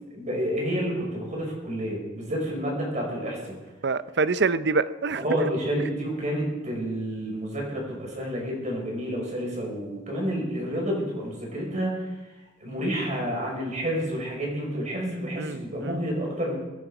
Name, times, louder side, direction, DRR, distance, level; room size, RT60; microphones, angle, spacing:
voice 1, 0.1-3.6 5.2-12.0 12.6-16.5, equal, 35° right, -2 dB, 5.5 m, -29 dB
voice 2, 3.8-5.3 15.4-16.0, right 4 dB, 55° right, 15 dB, 0.6 m, -26 dB
23.5 x 10.0 x 4.9 m, 1.1 s
head